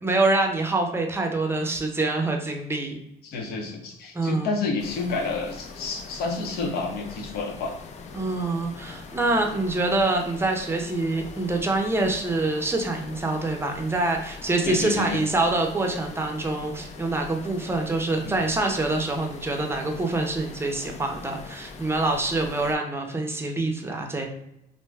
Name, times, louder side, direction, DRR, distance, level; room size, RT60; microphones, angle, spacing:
voice 1, 0.0-3.0 4.1-4.5 8.1-24.3, right 2 dB, 15° right, 2 dB, 0.6 m, -25 dB
voice 2, 3.2-7.7 14.6-15.2 18.2-18.3, left 4 dB, 65° left, 3 dB, 0.7 m, -29 dB
sound 1, 4.8-22.8, left 4 dB, 45° left, 0.4 m, -42 dB
2.6 x 2.1 x 3.4 m, 0.81 s
cardioid pair, 110°, 17 cm